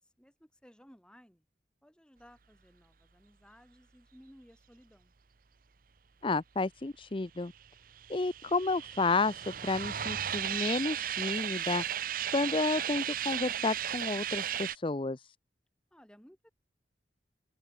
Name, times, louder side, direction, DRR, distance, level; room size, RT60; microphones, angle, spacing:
voice 1, 0.0-1.4 1.8-5.1 15.9-16.5, equal, 5° left, 3.5 m, -59 dB
voice 2, 6.2-7.5 8.1-15.3, left 3 dB, 30° left, 0.6 m, -31 dB
sound 1, 7.6-14.8, right 10 dB, 50° right, 0.8 m, -35 dB
open air
head